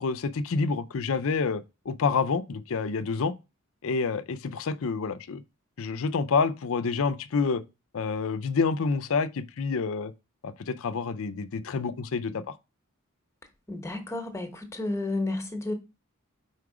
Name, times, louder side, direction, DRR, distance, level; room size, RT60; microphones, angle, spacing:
voice 1, 0.0-3.3 3.8-5.4 5.8-7.6 7.9-10.1 10.4-12.5, left 4 dB, 65° left, 0.5 m, -28 dB
voice 2, 13.7-15.7, left 2 dB, 15° left, 1.0 m, -31 dB
4.7 x 4.5 x 4.8 m
head